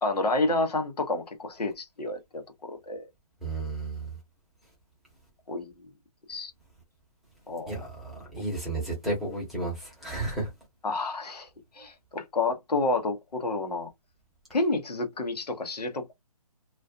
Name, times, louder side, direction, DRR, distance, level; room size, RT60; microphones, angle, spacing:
voice 1, 0.0-3.1 5.5-5.7 6.3-6.5 7.5-7.7 8.4-8.5 10.8-11.5 11.7-13.9 14.5-16.1, left 2 dB, 85° left, 0.8 m, -29 dB
voice 2, 3.4-4.0 7.7-10.5, right 2 dB, ahead, 0.8 m, -32 dB
2.4 x 2.3 x 2.5 m
hypercardioid pair, 150°, 20 cm